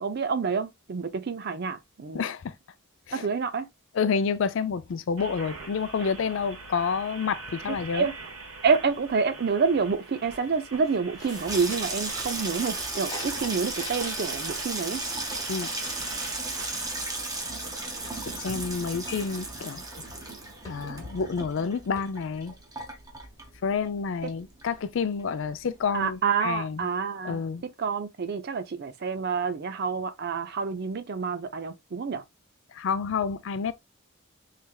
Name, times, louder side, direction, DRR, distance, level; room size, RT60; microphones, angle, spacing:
voice 1, 0.0-2.2 3.1-3.7 7.7-8.1 8.6-15.0 24.2-24.3 25.9-27.4 27.8-32.2, right 5 dB, 50° right, 0.5 m, -28 dB
voice 2, 2.1-2.5 3.1-3.3 3.9-8.1 15.5-15.7 18.2-19.8 20.6-22.5 23.6-26.9 27.2-27.6 32.7-33.7, left 5 dB, 60° left, 0.4 m, -29 dB
sound 1, 5.2-16.9, right 3 dB, 75° right, 1.2 m, -43 dB
sound 2, 7.6-8.2 8.5-9.3 9.7-9.9 10.2-14.5 14.8-17.2 19.0-19.6 20.0-20.1 20.6-21.2 21.6-21.7 22.0-22.1, left 2 dB, 20° left, 1.0 m, -46 dB
Water tap faucet / Sink (filling or washing), 11.1-24.0 24.3-24.9 25.2-25.5, right 2 dB, 15° right, 0.8 m, -35 dB
3.4 x 3.2 x 2.3 m
head